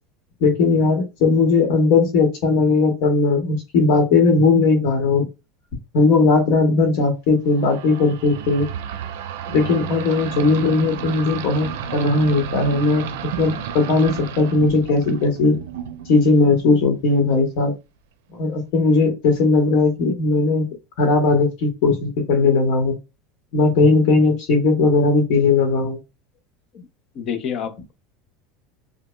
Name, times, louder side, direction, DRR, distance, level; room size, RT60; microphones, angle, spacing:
voice 1, 0.4-5.3 5.9-8.7 9.5-13.0 13.3-15.6 16.1-17.7 18.3-20.6 21.0-23.0 23.5-26.0, left 3 dB, 50° left, 1.0 m, -18 dB
sound 1, 7.5-16.9, right 8 dB, 85° right, 0.5 m, -32 dB
voice 2, 27.1-27.9, left 7 dB, 35° left, 0.6 m, -28 dB
5.0 x 2.1 x 2.2 m
supercardioid pair, 170°, 0 cm